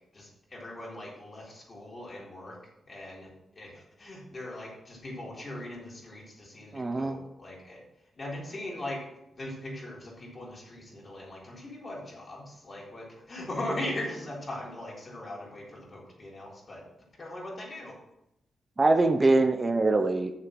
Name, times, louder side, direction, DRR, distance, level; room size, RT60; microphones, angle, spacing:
voice 1, 0.1-2.6 2.8-7.8 8.1-9.0 9.3-16.8 17.2-18.0, left 1 dB, 40° left, -4 dB, 3.7 m, -40 dB
voice 2, 6.7-7.2 18.8-20.3, right 2 dB, 30° right, 7 dB, 0.8 m, -23 dB
7.5 x 6.9 x 6.1 m, 0.84 s
cardioid pair, 90°, 0 cm